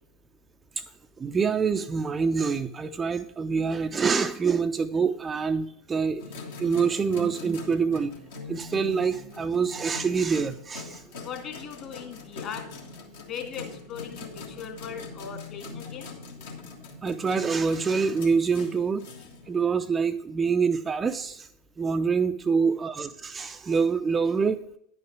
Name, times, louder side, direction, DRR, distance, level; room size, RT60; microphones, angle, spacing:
voice 1, 1.2-6.2 6.6-8.1 8.5-11.0 17.0-19.1 19.5-21.5 21.8-24.6, right 5 dB, 20° right, 8 dB, 0.4 m, -26 dB
sound 1, 6.2-20.0, left 3 dB, 70° left, 1.8 m, -42 dB
voice 2, 11.2-12.6 13.3-16.1, left 8 dB, 40° left, 3 dB, 2.1 m, -39 dB
10.0 x 5.5 x 4.6 m, 0.74 s
figure-of-eight pair, 80°, 0 cm